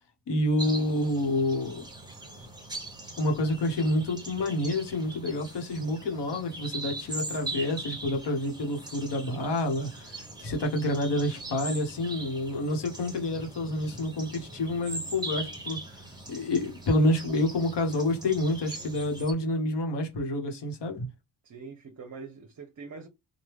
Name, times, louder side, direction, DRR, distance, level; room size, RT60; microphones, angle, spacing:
voice 1, 0.3-1.8 3.2-15.8 16.3-21.1, left 1 dB, 60° left, 1.0 m, -28 dB
sound 1, 0.6-19.3, right 2 dB, 10° right, 1.1 m, -41 dB
voice 2, 21.4-23.1, right 4 dB, 40° right, 0.7 m, -43 dB
3.3 x 2.2 x 3.0 m
cardioid pair, 115°, 48 cm